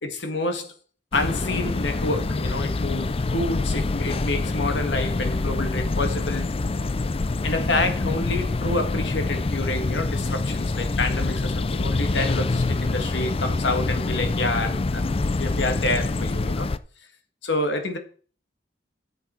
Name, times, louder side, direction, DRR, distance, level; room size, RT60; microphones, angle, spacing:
voice 1, 0.0-0.7 1.1-6.5 7.4-16.7 17.4-18.0, left 2 dB, 80° left, 1.9 m, -28 dB
sound 1, 1.1-16.8, left 3 dB, 35° left, 0.5 m, -26 dB
11.5 x 7.6 x 4.5 m
head